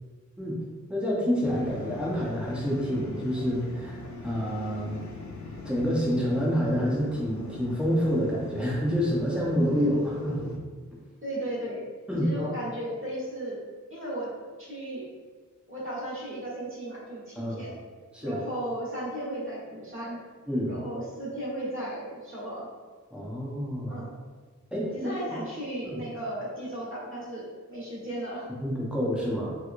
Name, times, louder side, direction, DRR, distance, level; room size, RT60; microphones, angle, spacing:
voice 1, 0.9-5.0 5.6-10.6 12.1-12.3 17.4-17.6 18.1-18.4 20.5-20.7 23.1-24.0 24.7-24.9 25.8-26.0 28.6-29.5, equal, 5° right, -6 dB, 0.8 m, -28 dB
sound 1, 1.4-10.6, left 3 dB, 70° left, 0.5 m, -42 dB
voice 2, 11.2-11.9 12.2-13.6 13.9-14.3 14.6-15.0 15.7-17.8 18.2-20.2 20.6-22.7 23.9-24.1 24.9-28.5, right 1 dB, 45° right, -7 dB, 1.2 m, -35 dB
3.1 x 3.0 x 2.5 m, 1.4 s
wide cardioid pair, 70°, 30 cm